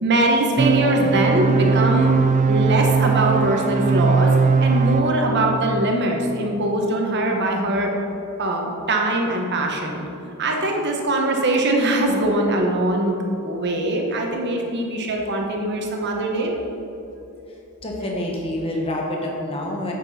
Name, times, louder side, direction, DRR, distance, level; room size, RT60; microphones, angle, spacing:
voice 1, 0.0-2.1 2.5-4.3 4.6-7.9 8.4-10.0 10.4-13.2 13.4-16.5, right 1 dB, 55° right, 1 dB, 1.2 m, -22 dB
sound 1, 0.6-5.6, right 5 dB, 35° right, 0.3 m, -19 dB
voice 2, 17.8-19.9, left 1 dB, 25° left, -1 dB, 1.2 m, -27 dB
8.9 x 7.5 x 4.3 m, 2.9 s
head